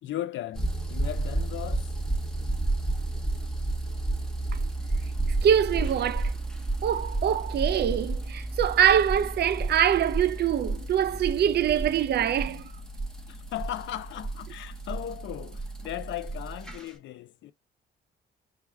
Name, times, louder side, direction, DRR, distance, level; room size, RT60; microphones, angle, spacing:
voice 1, 0.0-1.9 13.3-17.5, left 12 dB, 70° left, 0.5 m, -37 dB
sound 1, 0.5-16.8, right 2 dB, 5° left, 0.9 m, -32 dB
voice 2, 5.4-6.3 6.8-12.6, right 9 dB, 55° right, 0.5 m, -24 dB
4.9 x 2.4 x 3.3 m
cardioid pair, 90°, 20 cm